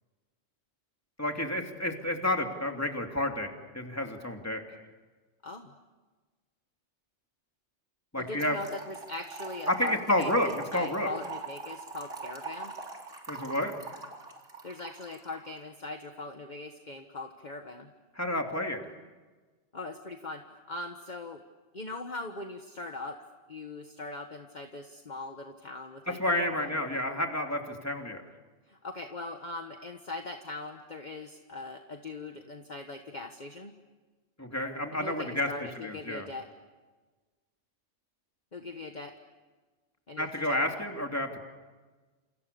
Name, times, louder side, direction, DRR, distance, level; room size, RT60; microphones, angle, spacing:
voice 1, 1.2-3.5 3.7-4.6 8.1-8.6 9.7-11.1 13.3-13.8 18.1-18.8 26.1-28.2 34.4-35.5 35.8-36.3 40.2-41.4, left 1 dB, 10° left, 3 dB, 2.9 m, -30 dB
voice 2, 5.4-5.7 8.2-12.7 14.6-17.9 19.7-21.4 21.7-23.2 23.5-27.0 28.7-33.7 34.9-36.5 38.5-39.1 40.1-40.8, left 2 dB, 40° left, 5 dB, 1.5 m, -41 dB
Trickle dribble / Fill (with liquid), 8.4-15.5, right 4 dB, 80° right, 3.7 m, -43 dB
29.0 x 28.5 x 7.0 m, 1.3 s
omnidirectional pair, 1.3 m